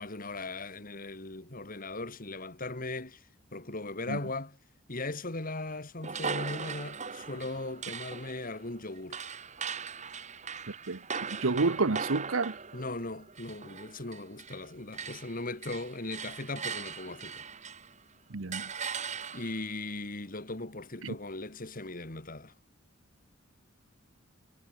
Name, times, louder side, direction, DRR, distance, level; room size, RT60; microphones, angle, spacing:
voice 1, 0.0-3.3 3.5-4.6 4.9-9.2 12.7-17.5 19.3-22.5, left 2 dB, 45° left, 3.1 m, -38 dB
sound 1, 6.0-14.7 14.9-18.0 18.5-19.7, right 6 dB, 35° right, 2.5 m, -39 dB
voice 2, 10.7-11.0 11.3-12.6 18.3-18.7 21.0-21.2, right 3 dB, 90° right, 1.0 m, -29 dB
head